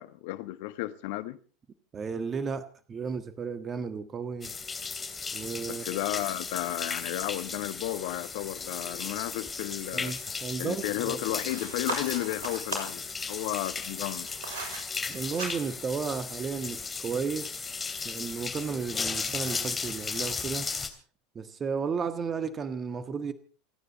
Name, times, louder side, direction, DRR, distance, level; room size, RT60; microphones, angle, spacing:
voice 1, 0.0-1.4 5.7-10.2 10.6-14.3, left 16 dB, 65° left, 1.3 m, -33 dB
voice 2, 1.9-4.5 5.3-6.0 9.9-11.2 15.1-17.6 18.0-20.7 21.3-23.3, right 5 dB, 30° right, 1.5 m, -33 dB
sound 1, 4.4-20.9, left 4 dB, 20° left, 2.9 m, -36 dB
sound 2, 11.4-13.0 13.8-14.8 15.2-15.9, right 5 dB, 70° right, 6.8 m, -38 dB
29.0 x 9.9 x 4.2 m
hypercardioid pair, 85°, 0 cm